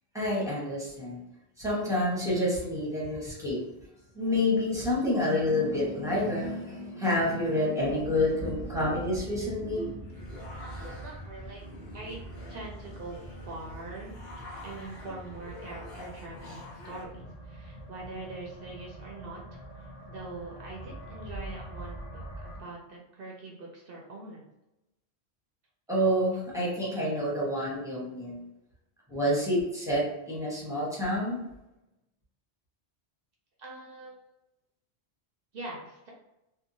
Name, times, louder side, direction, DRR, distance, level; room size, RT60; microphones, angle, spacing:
voice 1, 0.1-1.2 1.6-3.6 4.1-10.2 25.9-28.5 29.1-31.4, left 1 dB, 5° right, -7 dB, 0.9 m, -28 dB
sound 1, 7.8-22.6, right 1 dB, 35° left, 0.7 m, -44 dB
sound 2, 9.7-17.1, equal, 65° left, 0.9 m, -46 dB
voice 2, 10.6-11.7 11.9-12.2 12.5-14.1 14.6-24.4 33.6-34.2 35.5-36.1, right 2 dB, 65° right, -2 dB, 0.7 m, -43 dB
2.8 x 2.2 x 2.6 m, 0.92 s
omnidirectional pair, 1.1 m